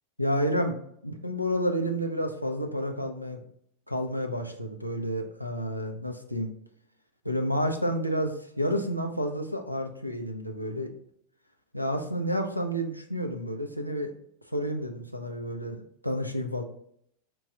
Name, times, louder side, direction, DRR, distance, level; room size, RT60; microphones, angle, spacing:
voice 1, 0.2-0.8 1.0-3.4 3.9-6.5 7.2-10.9 11.7-14.1 14.5-16.6, equal, 90° left, 4 dB, 0.5 m, -30 dB
4.5 x 2.3 x 3.8 m, 0.70 s
figure-of-eight pair, 90°, 0 cm